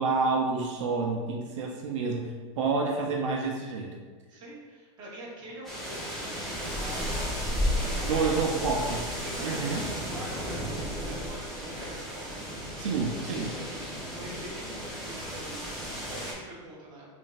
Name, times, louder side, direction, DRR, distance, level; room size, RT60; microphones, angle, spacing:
voice 1, 0.0-4.0 8.0-9.0 9.4-9.8 12.8-13.5, right 4 dB, 75° right, 0 dB, 0.5 m, -29 dB
voice 2, 4.3-8.6 9.2-12.6 13.7-13.8 14.1-17.1, right 1 dB, 25° right, -5 dB, 1.0 m, -44 dB
sound 1, 5.6-16.3, equal, ahead, 0.7 m, -33 dB
5.0 x 2.5 x 2.4 m, 1.5 s
supercardioid pair, 160°, 16 cm